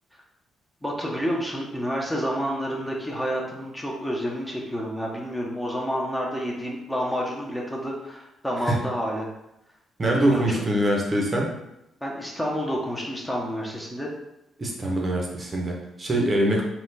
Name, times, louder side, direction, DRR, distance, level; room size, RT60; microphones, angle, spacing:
voice 1, 0.8-9.3 10.0-10.6 12.0-14.1, equal, 5° left, -2 dB, 0.9 m, -29 dB
voice 2, 10.0-11.5 14.6-16.6, right 1 dB, 30° right, -1 dB, 0.8 m, -23 dB
4.2 x 2.4 x 4.0 m, 0.86 s
cardioid pair, 90°, 0 cm